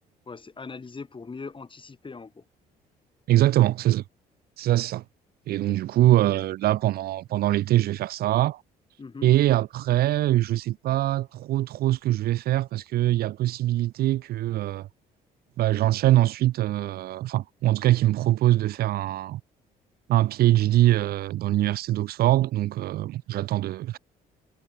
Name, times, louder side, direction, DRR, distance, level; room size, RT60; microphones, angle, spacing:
voice 1, 0.3-2.4 6.3-6.4 9.0-9.3, left 4 dB, 30° left, 6.5 m, -40 dB
voice 2, 3.3-4.0 4.6-5.0 5.5-8.6 9.2-14.9 15.6-19.4 20.1-24.0, right 15 dB, 65° right, 0.5 m, -23 dB
supercardioid pair, 75°, 17 cm